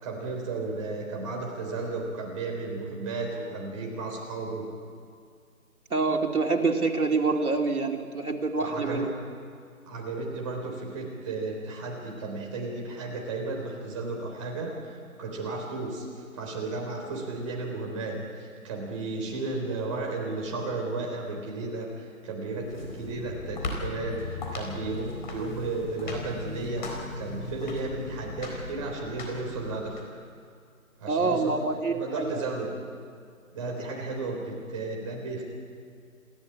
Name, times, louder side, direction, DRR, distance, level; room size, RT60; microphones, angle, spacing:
voice 1, 0.0-4.7 8.6-9.0 9.9-16.1 16.3-26.8 27.1-30.0 31.0-31.6 31.9-32.7 33.5-35.4, right 3 dB, 20° right, 0 dB, 3.9 m, -34 dB
voice 2, 5.9-9.1 31.1-32.5, right 3 dB, 85° right, 3 dB, 3.0 m, -26 dB
sound 1, 22.6-30.0, left 3 dB, 35° left, 4.1 m, -38 dB
28.5 x 13.5 x 8.7 m, 2.3 s
figure-of-eight pair, 165°, 42 cm